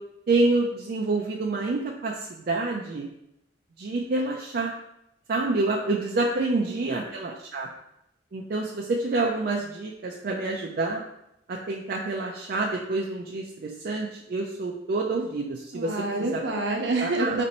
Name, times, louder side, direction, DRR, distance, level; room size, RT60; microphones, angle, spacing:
voice 1, 0.3-3.1 3.8-4.7 5.3-7.7 8.3-11.0 11.5-16.0 16.3-16.4 17.0-17.4, right 3 dB, 55° right, -1 dB, 0.4 m, -27 dB
voice 2, 6.4-6.9 15.7-17.4, right 2 dB, 70° right, 1 dB, 0.8 m, -28 dB
4.2 x 2.6 x 4.1 m, 0.82 s
head